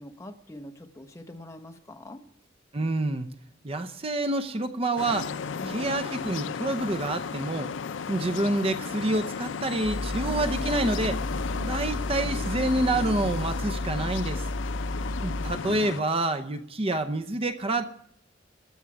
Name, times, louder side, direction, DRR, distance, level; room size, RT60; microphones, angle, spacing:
voice 1, 0.0-2.2 5.5-6.0, left 1 dB, 15° left, 5 dB, 1.0 m, -45 dB
voice 2, 2.7-3.3 3.6-5.3 5.6-7.7 8.1-11.2 11.5-14.4 15.2-17.8, right 2 dB, 30° right, 9 dB, 0.7 m, -28 dB
sound 1, 5.0-16.0, left 6 dB, 75° left, 0.5 m, -34 dB
sound 2, 9.8-15.5, left 1 dB, 70° right, 3.9 m, -32 dB
13.5 x 7.3 x 9.7 m, 0.66 s
head